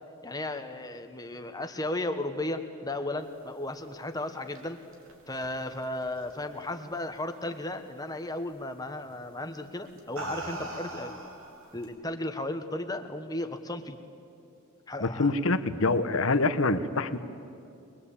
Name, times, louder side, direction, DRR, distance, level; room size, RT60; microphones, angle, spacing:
voice 1, 0.2-4.8 5.3-11.3 11.7-14.0 14.9-15.3, left 1 dB, 15° left, 6 dB, 1.3 m, -35 dB
sound 1, 4.1-6.9 7.3-7.7 9.0-9.2 9.8-11.9, right 2 dB, 65° right, 3.2 m, -42 dB
voice 2, 15.0-17.2, left 3 dB, 65° left, 11 dB, 1.1 m, -25 dB
23.0 x 21.5 x 8.6 m, 2.6 s
head